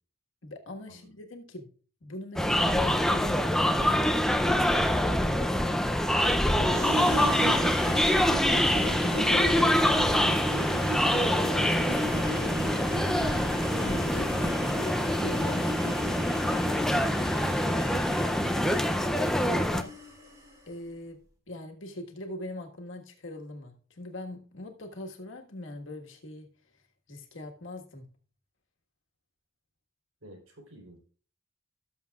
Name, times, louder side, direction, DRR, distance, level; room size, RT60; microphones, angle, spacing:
voice 1, 0.4-1.7 2.0-5.8 6.5-7.8 8.5-10.8 11.5-12.6 13.8-18.7 19.4-19.9 20.7-21.2 21.5-26.5 27.1-28.1, left 1 dB, 65° left, 3 dB, 1.6 m, -41 dB
sound 1, 2.4-19.8, equal, ahead, 0.4 m, -25 dB
sound 2, 6.6-20.6, equal, 15° right, 2.4 m, -37 dB
voice 2, 11.9-13.3 30.2-31.0, right 1 dB, 80° right, 3 dB, 3.8 m, -47 dB
17.0 x 7.1 x 2.4 m, 0.41 s
head